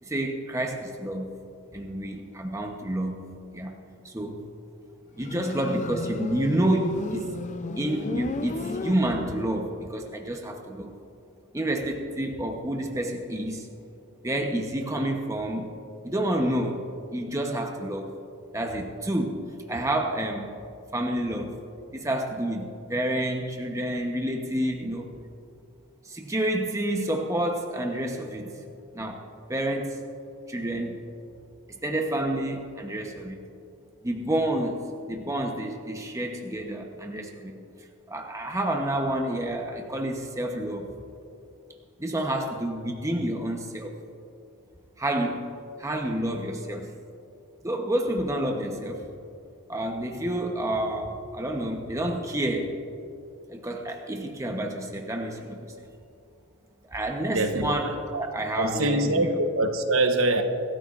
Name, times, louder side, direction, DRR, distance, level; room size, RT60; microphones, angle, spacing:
voice 1, 0.0-1.3 1.7-3.2 3.5-3.7 4.0-4.4 5.2-7.3 7.8-10.9 11.5-13.7 14.2-15.7 16.0-16.9 17.1-18.1 18.5-20.5 20.9-21.5 21.9-25.1 26.0-28.7 28.9-29.2 29.5-30.0 30.5-31.1 31.7-33.4 34.0-37.6 38.1-40.9 42.0-43.9 45.0-45.5 45.8-46.9 47.6-49.1 49.7-52.8 53.5-55.9 56.9-59.3, right 1 dB, 15° right, 2 dB, 0.9 m, -29 dB
Motorcycle, 5.2-9.5, left 2 dB, 30° left, 0.5 m, -34 dB
voice 2, 57.3-57.7 58.1-58.2 58.6-60.4, right 2 dB, 65° right, 5 dB, 1.1 m, -24 dB
24.5 x 14.0 x 2.5 m, 2.6 s
head